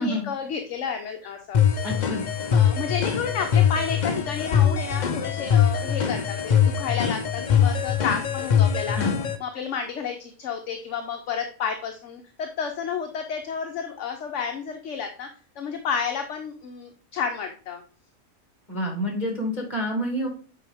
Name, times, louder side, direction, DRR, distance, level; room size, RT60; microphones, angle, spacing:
voice 1, 0.0-1.8 2.5-9.0 9.4-15.3 15.6-17.8, left 6 dB, 65° left, 5 dB, 1.0 m, -31 dB
sound 1, 1.5-9.4, left 8 dB, 45° left, 0.6 m, -22 dB
voice 2, 1.8-2.2 9.0-9.2 18.7-20.3, equal, 30° left, 1 dB, 2.2 m, -28 dB
8.3 x 4.7 x 3.5 m, 0.39 s
omnidirectional pair, 1.4 m